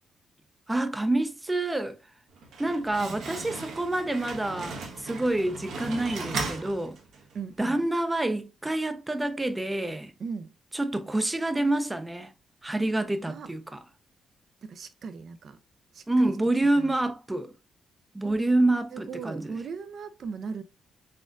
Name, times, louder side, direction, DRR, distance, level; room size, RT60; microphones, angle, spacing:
voice 1, 0.7-2.0 2.6-7.0 7.6-10.1 10.7-12.3 12.6-13.8 16.1-17.5 18.1-19.5, right 2 dB, 15° right, 0.5 m, -27 dB
Slam, 2.3-7.4, right 3 dB, 75° right, 1.0 m, -37 dB
voice 2, 7.3-7.9 10.2-10.5 13.3-13.5 14.6-15.6 15.9-16.3 16.8-17.1 18.2-18.4 18.9-20.6, right 5 dB, 60° right, 0.6 m, -38 dB
4.2 x 3.6 x 2.5 m
cardioid pair, 90°, 0 cm